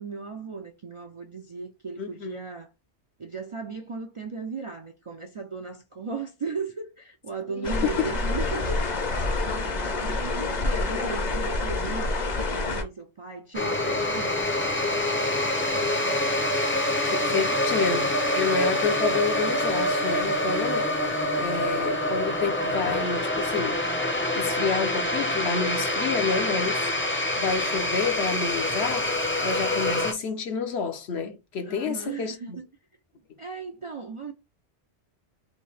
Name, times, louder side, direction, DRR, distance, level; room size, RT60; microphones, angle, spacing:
voice 1, 0.0-2.7 3.2-8.9 9.4-14.4 17.2-17.6 27.6-27.7 31.7-32.7 33.4-34.3, right 4 dB, 45° right, 0.4 m, -36 dB
voice 2, 2.0-2.4 7.5-8.1 15.8-16.2 17.0-18.1 18.3-20.9 21.4-23.8 24.3-26.9 27.4-32.6, left 5 dB, 70° left, 1.1 m, -29 dB
sound 1, 7.6-12.8, left 3 dB, 45° left, 0.8 m, -27 dB
sound 2, 13.5-30.1, left 1 dB, 15° left, 0.5 m, -26 dB
4.3 x 2.7 x 3.3 m
omnidirectional pair, 1.1 m